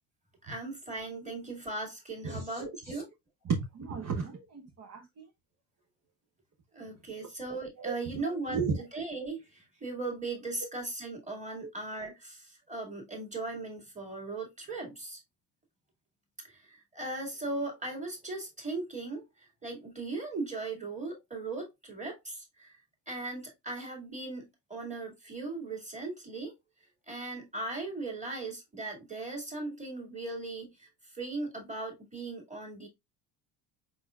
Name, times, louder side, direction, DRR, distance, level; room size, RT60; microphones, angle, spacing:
voice 1, 0.4-3.1 6.7-15.2 16.4-19.2 19.6-22.7 23.1-26.5 27.1-30.9 31.1-32.9, right 3 dB, 15° right, 2.2 m, -38 dB
voice 2, 2.2-3.0 3.4-5.3 7.8-8.8 11.6-11.7, right 5 dB, 35° right, 1.0 m, -35 dB
4.8 x 4.2 x 2.4 m
supercardioid pair, 105°, 50 cm